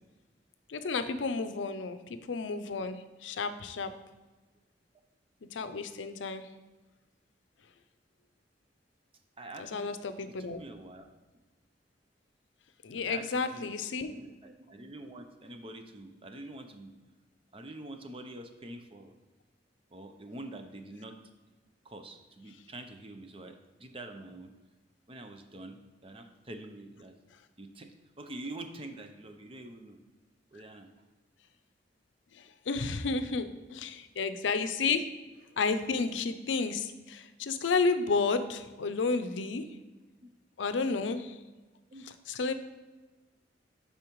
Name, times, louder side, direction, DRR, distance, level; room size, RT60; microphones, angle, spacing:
voice 1, 0.7-3.9 5.5-6.5 9.6-10.6 12.8-14.1 32.3-35.1 35.6-39.7 40.6-41.4 42.3-42.5, left 4 dB, 90° left, 11 dB, 0.5 m, -31 dB
voice 2, 9.4-10.0 10.3-11.1 12.9-13.3 13.5-13.7 14.0-16.9 17.5-19.1 19.9-21.2 21.8-24.5 25.1-27.1 27.6-30.0 30.5-30.9 41.9-42.0, right 1 dB, 30° right, 6 dB, 0.6 m, -46 dB
8.5 x 5.6 x 3.0 m, 1.2 s
head